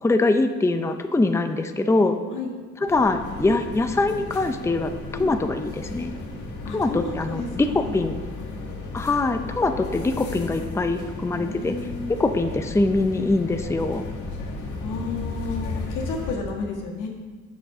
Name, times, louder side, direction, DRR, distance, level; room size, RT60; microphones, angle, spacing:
voice 1, 0.0-2.2 2.8-4.9 5.2-6.1 6.7-8.2 8.9-11.7 12.1-14.0, left 2 dB, 10° left, 7 dB, 0.5 m, -23 dB
sound 1, 2.9-16.4, left 3 dB, 75° left, 1.6 m, -34 dB
voice 2, 6.6-8.0 11.3-12.2 14.8-17.1, left 3 dB, 90° left, 0 dB, 1.7 m, -32 dB
7.7 x 7.2 x 4.8 m, 1.6 s
cardioid pair, 90°, 30 cm